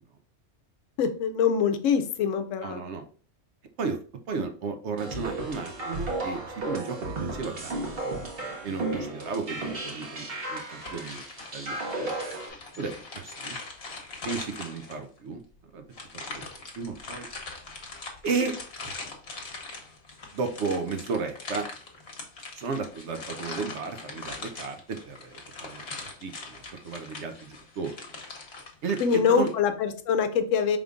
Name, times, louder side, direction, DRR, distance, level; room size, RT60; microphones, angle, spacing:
voice 1, 1.0-2.8 29.0-30.8, left 6 dB, 80° left, 10 dB, 0.9 m, -24 dB
voice 2, 2.6-3.1 3.8-4.0 4.3-8.2 8.6-11.2 11.5-12.1 12.8-13.6 14.2-15.4 15.7-15.8 16.3-16.5 16.7-17.3 18.2-18.5 20.3-21.7 22.6-25.8 26.2-28.0 28.8-29.5, right 4 dB, 65° right, 6 dB, 0.9 m, -33 dB
sound 1, 5.0-12.5, right 2 dB, 50° right, 1.2 m, -34 dB
sound 2, 10.8-15.2 15.9-29.5, left 3 dB, 55° left, 1.2 m, -41 dB
5.0 x 3.5 x 2.3 m, 0.42 s
omnidirectional pair, 1.3 m